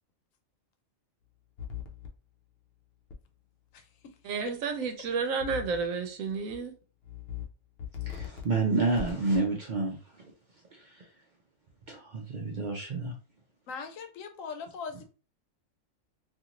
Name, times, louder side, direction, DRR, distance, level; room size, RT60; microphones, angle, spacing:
sound 1, 1.6-2.1 3.1-3.2 5.4-5.9 6.3-6.6 7.0-7.4 7.8-8.4 8.9-9.4, left 8 dB, 60° left, 0.7 m, -39 dB
voice 1, 3.7-4.2 4.4-4.6 13.7-15.0, left 5 dB, 80° left, 1.0 m, -41 dB
voice 2, 4.2-6.7, right 5 dB, 85° right, 1.0 m, -31 dB
voice 3, 8.1-10.2 10.7-11.0 11.9-13.1, right 3 dB, 60° right, 0.5 m, -30 dB
2.6 x 2.5 x 2.9 m
omnidirectional pair, 1.4 m